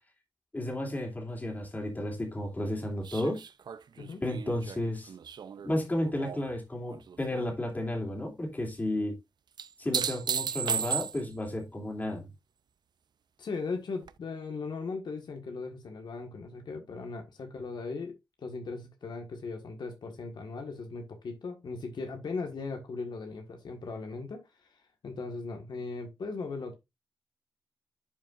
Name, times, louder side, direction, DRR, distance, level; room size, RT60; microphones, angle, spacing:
voice 1, 0.5-3.4 4.2-5.1 5.6-9.2 9.8-12.3, left 1 dB, 20° left, 2.9 m, -32 dB
sound 1, 3.0-6.5 6.9-7.5 9.6-11.5 14.1-14.2, right 7 dB, 70° right, 0.5 m, -35 dB
voice 2, 13.4-18.1 18.4-24.4 24.7-24.8 25.0-26.7, left 4 dB, 75° left, 1.6 m, -38 dB
10.5 x 5.5 x 2.5 m
wide cardioid pair, 160°, 8 cm